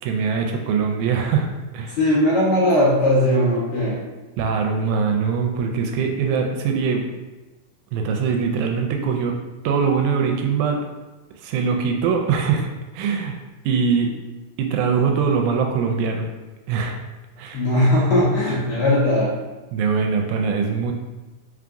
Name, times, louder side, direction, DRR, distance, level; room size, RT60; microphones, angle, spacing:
voice 1, 0.0-1.5 1.7-2.0 4.4-7.0 7.9-9.4 9.6-10.8 11.4-12.7 12.9-13.4 13.7-14.1 14.6-16.3 16.7-17.0 17.4-17.6 19.7-20.9, right 6 dB, 80° right, 3 dB, 1.8 m, -22 dB
voice 2, 2.0-4.0 17.5-19.3, left 1 dB, 70° left, -8 dB, 1.3 m, -18 dB
4.6 x 3.4 x 2.5 m, 1.2 s
omnidirectional pair, 3.6 m